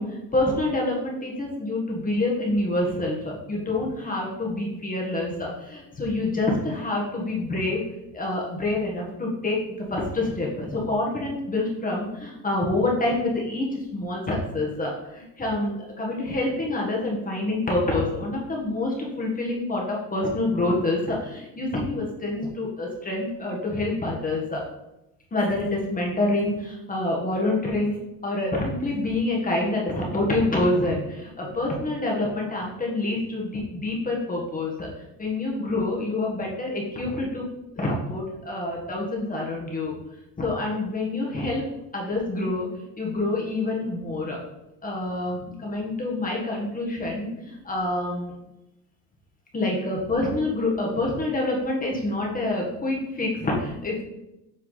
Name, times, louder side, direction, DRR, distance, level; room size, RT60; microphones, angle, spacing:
voice 1, 0.0-7.8 8.1-24.6 25.3-28.0 28.2-34.9 35.2-37.5 37.8-40.0 40.4-41.6 41.9-44.4 44.8-48.3 49.5-54.0, left 2 dB, 20° left, -2 dB, 1.5 m, -27 dB
7.8 x 4.7 x 4.0 m, 0.90 s
cardioid pair, 140°, 43 cm